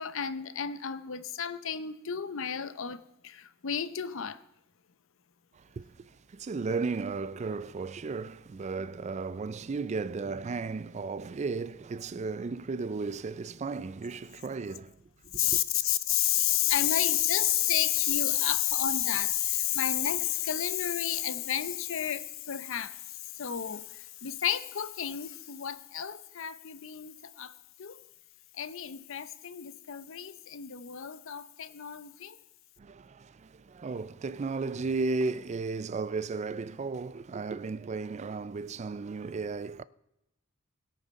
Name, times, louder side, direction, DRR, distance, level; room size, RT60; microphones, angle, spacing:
voice 1, 0.0-4.4 15.3-27.5 27.8-28.0 28.5-32.4, left 11 dB, 65° left, 0.7 m, -31 dB
voice 2, 5.5-15.6 32.8-39.8, right 4 dB, 35° right, 0.4 m, -35 dB
17.5 x 6.6 x 5.2 m
head